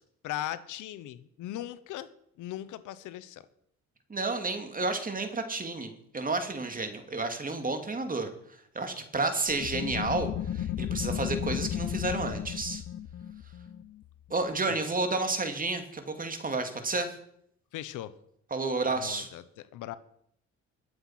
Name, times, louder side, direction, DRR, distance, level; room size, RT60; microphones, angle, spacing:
voice 1, 0.2-3.4 14.7-14.8 17.7-18.1 18.9-20.0, left 13 dB, 90° left, 15 dB, 0.9 m, -39 dB
voice 2, 4.1-8.3 8.7-12.8 14.3-17.1 18.5-19.3, right 3 dB, 30° right, 6 dB, 2.5 m, -31 dB
sound 1, 9.5-14.8, left 10 dB, 50° left, 0.7 m, -34 dB
22.0 x 8.0 x 5.8 m, 0.71 s
cardioid pair, 90°, 30 cm